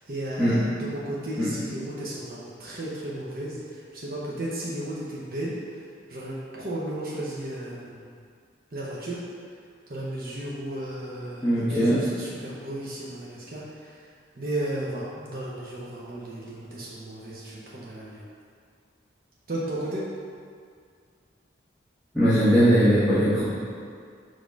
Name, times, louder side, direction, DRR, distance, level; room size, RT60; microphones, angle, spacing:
voice 1, 0.1-5.5 6.1-8.0 8.7-9.2 9.9-14.0 14.4-18.2 19.5-20.0, right 1 dB, 50° right, -6 dB, 0.8 m, -34 dB
voice 2, 11.4-12.0 22.1-23.4, equal, ahead, -15 dB, 1.3 m, -20 dB
5.2 x 3.8 x 5.2 m, 2.2 s
head